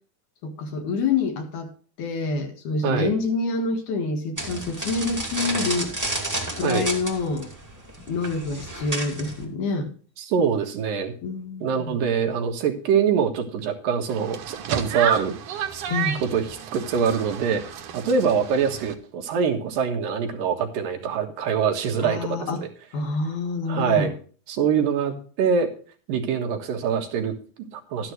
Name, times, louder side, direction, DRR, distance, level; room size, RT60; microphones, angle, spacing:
voice 1, 0.4-1.7 2.0-5.9 6.6-7.5 8.1-9.9 11.2-12.0 15.9-16.2 22.0-22.6 22.9-24.1, left 3 dB, 60° left, 4 dB, 2.9 m, -27 dB
sound 1, 4.4-9.4, right 1 dB, 10° right, 1.1 m, -31 dB
voice 2, 10.2-11.1 11.6-15.3 16.2-17.6 17.9-22.7 23.7-24.1 24.5-25.7 26.1-28.1, right 6 dB, 65° right, 3 dB, 2.9 m, -24 dB
sound 2, 14.1-18.9, right 8 dB, 85° right, 1.4 m, -32 dB
12.5 x 10.5 x 3.2 m, 0.40 s
omnidirectional pair, 4.4 m